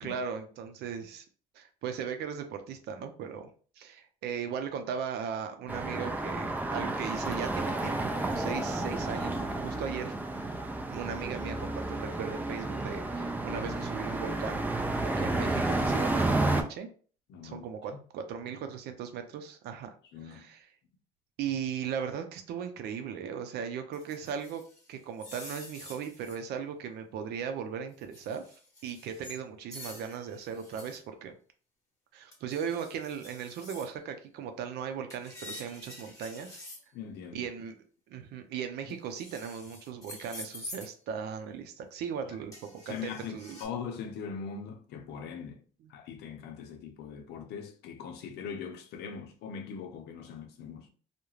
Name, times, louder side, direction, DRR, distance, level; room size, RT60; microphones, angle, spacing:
voice 1, 0.0-1.2 1.5-10.1 10.9-14.6 15.0-16.9 17.4-19.9 20.2-20.7 21.4-24.6 24.9-28.4 28.8-31.4 32.1-36.6 37.3-37.8 38.1-43.6 45.8-45.9, right 7 dB, 75° right, 0.5 m, -38 dB
sound 1, 5.7-16.6, right 2 dB, 10° right, 0.4 m, -31 dB
voice 2, 17.3-17.7 20.1-20.5 36.9-37.5 42.3-42.4 42.8-45.6 45.9-50.9, left 6 dB, 80° left, 0.6 m, -41 dB
sound 2, 23.9-26.4 28.0-29.4 29.7-31.0 32.3-33.9 35.1-36.8 38.9-40.9 42.5-43.6, left 1 dB, 20° left, 1.1 m, -47 dB
2.3 x 2.1 x 3.0 m
cardioid pair, 110°, 17 cm